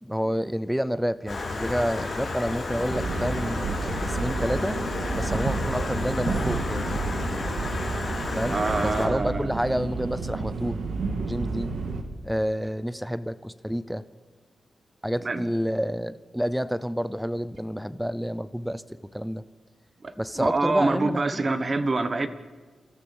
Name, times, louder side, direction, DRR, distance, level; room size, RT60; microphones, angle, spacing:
voice 1, 0.0-3.6 4.0-4.8 5.1-7.0 8.4-8.6 8.8-10.8 11.3-11.8 12.2-14.0 15.0-18.8 19.1-19.4 20.2-21.5, equal, ahead, 15 dB, 0.6 m, -29 dB
Stream, 1.3-9.1, left 3 dB, 30° left, 5.1 m, -31 dB
sound 1, 2.9-12.0, right 4 dB, 75° right, 2.1 m, -31 dB
voice 2, 8.5-9.5 15.2-15.4 20.0-22.3, right 3 dB, 30° right, 11 dB, 1.2 m, -26 dB
30.0 x 13.5 x 7.1 m, 1.5 s
wide cardioid pair, 155°, 0 cm